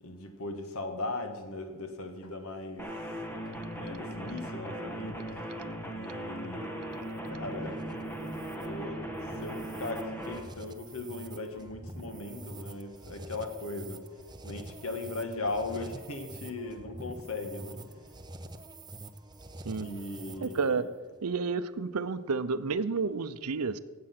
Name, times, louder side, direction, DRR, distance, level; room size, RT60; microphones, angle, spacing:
voice 1, 0.0-3.1 3.4-5.4 5.9-6.9 7.3-7.8 8.6-14.0 14.4-18.2 19.7-20.8, left 2 dB, 70° left, 7 dB, 1.5 m, -38 dB
sound 1, 2.8-10.4, right 1 dB, 10° left, 1.3 m, -38 dB
sound 2, 6.9-20.8, right 1 dB, 20° right, 0.7 m, -46 dB
voice 2, 20.4-20.9 21.2-23.8, right 4 dB, 80° right, 14 dB, 0.6 m, -30 dB
17.0 x 7.6 x 5.9 m, 1.4 s
head